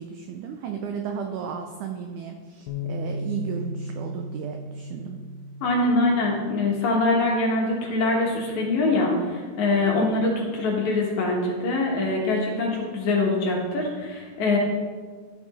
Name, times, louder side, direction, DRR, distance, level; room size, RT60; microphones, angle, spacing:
voice 1, 0.0-5.2, right 7 dB, 90° right, 4 dB, 1.7 m, -34 dB
Bass guitar, 2.7-8.9, left 1 dB, 85° left, 2.4 m, -37 dB
voice 2, 5.6-14.6, left 2 dB, 60° left, -1 dB, 2.3 m, -23 dB
12.0 x 6.1 x 4.1 m, 1.5 s
omnidirectional pair, 4.2 m